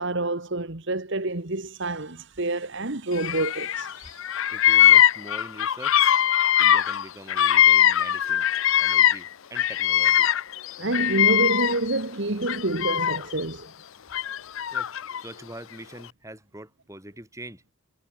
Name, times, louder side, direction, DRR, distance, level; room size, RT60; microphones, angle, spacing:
voice 1, 0.0-4.2 10.8-13.7, right 2 dB, 55° right, 1.6 m, -28 dB
Bird vocalization bird call bird song, 3.2-3.9 4.2-9.3 9.5-12.0 12.4-13.4 14.1-15.2, left 11 dB, 60° left, 0.5 m, -21 dB
voice 2, 4.5-6.0 6.6-8.5 8.8-10.3 14.2-14.3 14.7-17.6, right 1 dB, 15° right, 5.0 m, -43 dB
head